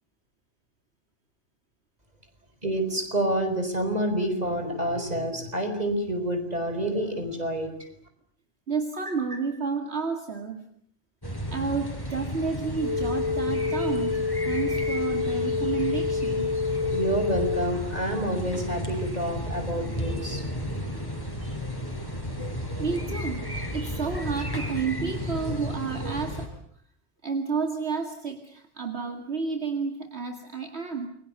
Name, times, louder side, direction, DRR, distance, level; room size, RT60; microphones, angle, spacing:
voice 1, 2.6-7.7 16.8-20.4, right 1 dB, 35° right, 7 dB, 5.3 m, -28 dB
voice 2, 8.7-10.6 11.5-16.5 22.8-26.5 27.2-31.1, right 5 dB, 60° right, 5 dB, 2.5 m, -31 dB
sound 1, 11.2-26.5, equal, 20° left, 4.9 m, -33 dB
sound 2, 12.8-17.7, left 5 dB, 15° right, 6.6 m, -28 dB
29.0 x 23.5 x 8.1 m, 0.63 s
omnidirectional pair, 1.3 m